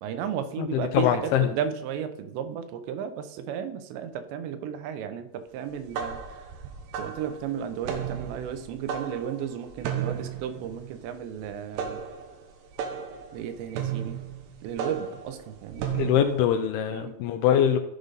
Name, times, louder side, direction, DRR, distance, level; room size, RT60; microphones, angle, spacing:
voice 1, 0.0-6.5 6.9-12.0 13.3-14.2 14.6-15.9 16.9-17.2, right 8 dB, 90° right, 9 dB, 3.1 m, -34 dB
voice 2, 0.6-1.5 15.9-17.8, left 9 dB, 80° left, 7 dB, 2.3 m, -23 dB
sound 1, 5.7-16.4, right 8 dB, 70° right, 3.0 m, -35 dB
14.5 x 5.2 x 4.0 m, 0.85 s
omnidirectional pair, 5.0 m